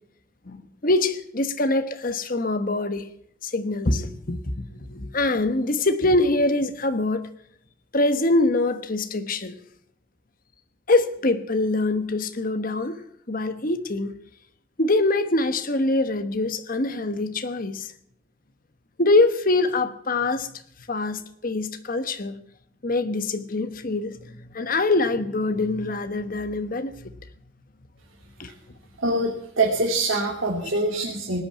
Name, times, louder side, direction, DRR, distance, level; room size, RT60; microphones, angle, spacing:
voice 1, 0.5-3.1 3.4-7.3 7.9-9.6 10.9-13.0 13.3-14.1 14.8-17.9 19.0-20.5 20.9-22.4 22.8-27.1 28.4-28.5, left 2 dB, 45° left, 1.1 m, -24 dB
voice 2, 29.0-31.4, right 2 dB, 85° right, 2.6 m, -24 dB
19.0 x 8.8 x 8.5 m
head